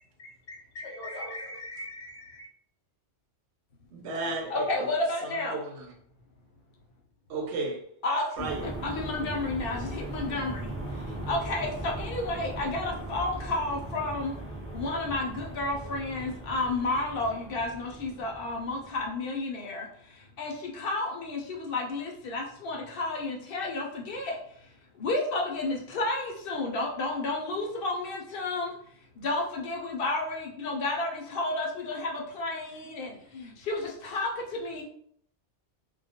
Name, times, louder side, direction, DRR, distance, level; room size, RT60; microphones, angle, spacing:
voice 1, 0.2-2.5, left 1 dB, 85° left, 1.0 m, -41 dB
voice 2, 3.9-4.9 5.2-5.9 7.3-7.8 8.4-8.7, right 3 dB, 75° right, 0.9 m, -34 dB
voice 3, 4.5-5.6 8.0-14.3 14.7-24.7 24.9-28.7 29.2-34.8, left 2 dB, 65° left, 0.7 m, -32 dB
sound 1, 8.4-19.2, right 1 dB, 15° right, 0.4 m, -39 dB
2.2 x 2.1 x 2.7 m
omnidirectional pair, 1.2 m